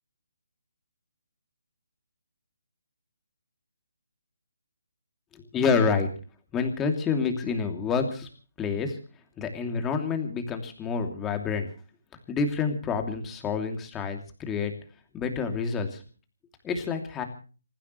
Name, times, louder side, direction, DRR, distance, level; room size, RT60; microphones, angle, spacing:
voice 1, 5.5-6.1 6.5-8.3 8.6-9.0 9.4-11.7 12.3-14.7 15.1-16.0 16.6-17.2, left 5 dB, 10° left, 5 dB, 2.8 m, -28 dB
27.5 x 15.5 x 3.2 m, 0.38 s
hypercardioid pair, 160°, 0 cm